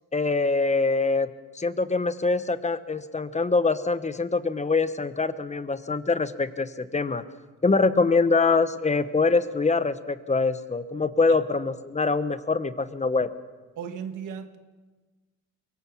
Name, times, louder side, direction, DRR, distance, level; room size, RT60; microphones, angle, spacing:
voice 1, 0.1-1.3 1.5-7.2 7.6-13.3, left 3 dB, 25° left, 12 dB, 1.1 m, -24 dB
voice 2, 13.8-14.6, right 7 dB, 80° right, 8 dB, 1.7 m, -36 dB
23.0 x 18.0 x 7.2 m, 1.3 s
cardioid pair, 90°, 30 cm